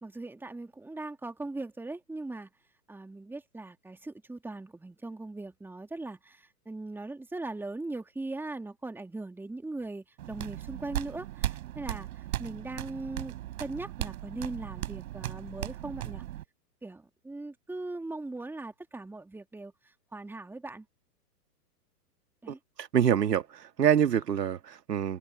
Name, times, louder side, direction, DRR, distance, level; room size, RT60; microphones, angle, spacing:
voice 1, 0.0-2.5 2.9-12.1 12.4-16.2 16.8-19.7 20.1-20.8 22.4-22.6, right 2 dB, 5° right, 2.6 m, -39 dB
sound 1, 10.2-16.4, right 14 dB, 55° right, 5.2 m, -37 dB
voice 2, 22.5-25.2, right 9 dB, 75° right, 2.6 m, -26 dB
hypercardioid pair, 120°, 49 cm